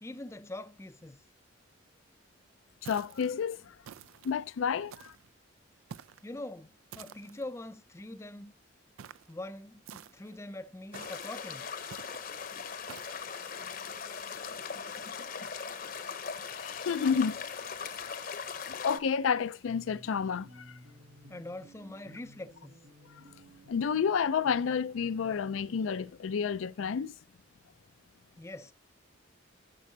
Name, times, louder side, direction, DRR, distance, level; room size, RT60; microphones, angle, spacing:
voice 1, 0.0-1.2 6.2-8.5 9.3-11.7 21.3-22.8 28.4-28.7, left 1 dB, 15° left, 0.4 m, -43 dB
voice 2, 2.8-3.7 4.2-5.1 16.5-17.4 18.8-20.7 23.7-27.1, left 6 dB, 80° left, 0.4 m, -30 dB
sound 1, 2.9-3.3 3.8-4.3 4.9-5.3 5.9-6.3 6.9-7.4 9.0-9.3 9.9-10.4 10.9-11.3 11.9-12.3 12.9-13.2, right 8 dB, 85° right, 0.4 m, -49 dB
sound 2, 10.9-19.0, left 6 dB, 45° left, 0.8 m, -40 dB
sound 3, 19.6-26.0, right 1 dB, 60° right, 5.2 m, -55 dB
10.5 x 6.2 x 2.7 m
head